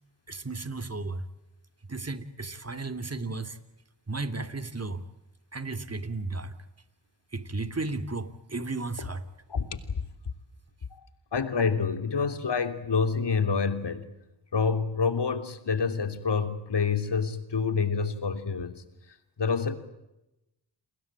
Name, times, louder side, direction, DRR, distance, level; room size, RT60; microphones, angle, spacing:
voice 1, 0.3-1.2 1.9-3.6 4.1-5.0 5.5-6.5 7.3-9.2, right 3 dB, 35° right, 13 dB, 3.1 m, -34 dB
voice 2, 11.3-14.1 14.5-18.8 19.4-19.7, left 5 dB, 65° left, 10 dB, 3.2 m, -27 dB
29.0 x 20.5 x 9.0 m, 0.93 s
cardioid pair, 45°, 44 cm